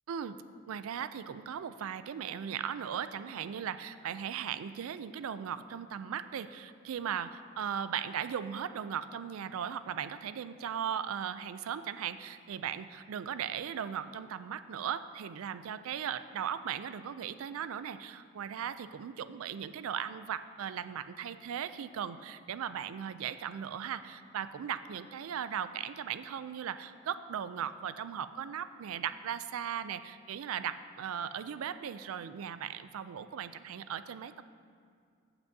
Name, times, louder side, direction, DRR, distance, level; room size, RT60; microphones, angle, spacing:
voice 1, 0.1-0.4 0.7-34.4, right 8 dB, 75° right, 13 dB, 0.3 m, -38 dB
15.0 x 6.0 x 2.7 m, 2.2 s
head